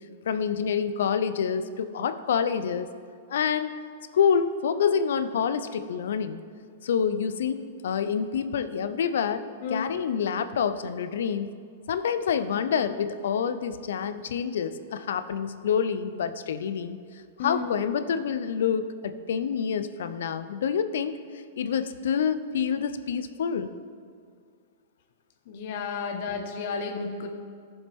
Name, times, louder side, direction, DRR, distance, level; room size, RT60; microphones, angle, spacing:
voice 1, 0.3-2.9 3.3-3.7 4.1-6.4 6.8-11.5 11.9-17.0 17.4-21.1 21.6-23.7, left 7 dB, 75° left, 11 dB, 0.5 m, -27 dB
voice 2, 9.6-9.9 12.5-12.6 17.4-17.8 25.5-27.3, left 5 dB, 60° left, 5 dB, 1.2 m, -32 dB
14.0 x 7.1 x 3.6 m, 2.1 s
hypercardioid pair, 125°, 0 cm